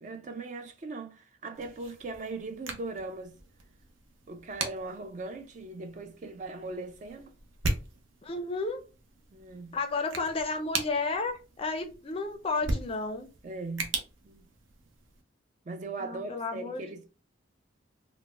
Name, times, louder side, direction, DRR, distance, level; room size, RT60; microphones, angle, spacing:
voice 1, 0.0-3.3 4.3-7.3 9.3-9.8 13.4-13.9 14.2-14.4 15.7-17.1, right 3 dB, 35° right, 0.3 m, -39 dB
sound 1, 1.5-15.2, right 3 dB, 75° right, 0.6 m, -39 dB
voice 2, 8.2-8.8 9.7-13.3 16.0-16.8, left 3 dB, 30° left, 0.4 m, -32 dB
3.9 x 2.1 x 2.3 m
head